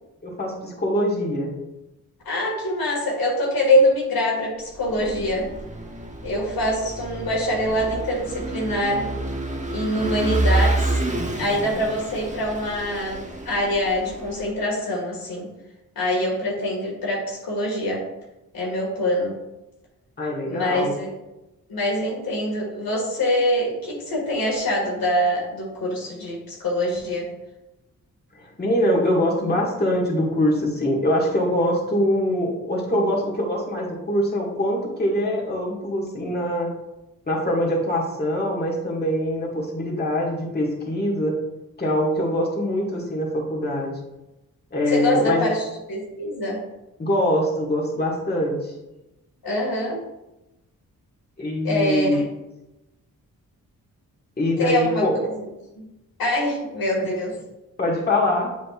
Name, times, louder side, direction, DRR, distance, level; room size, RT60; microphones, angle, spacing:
voice 1, 0.2-1.5 20.2-20.9 28.4-36.7 37.3-41.4 41.8-43.9 44.7-45.5 47.0-48.7 51.4-52.2 54.4-55.1 57.0-57.1 57.8-58.5, left 1 dB, 30° left, -3 dB, 1.9 m, -23 dB
voice 2, 2.3-5.5 6.2-9.1 9.7-11.0 11.4-15.5 16.0-18.0 18.5-19.4 20.4-21.1 21.7-27.3 44.9-45.6 45.9-46.6 49.4-50.0 51.6-52.3 54.6-55.5 55.8-55.9 56.2-57.4, left 1 dB, 80° left, -3 dB, 2.0 m, -24 dB
Vehicle / Engine, 4.7-14.5, right 2 dB, 20° right, 1.1 m, -28 dB
7.6 x 5.1 x 2.5 m, 0.97 s
cardioid pair, 65°, 35 cm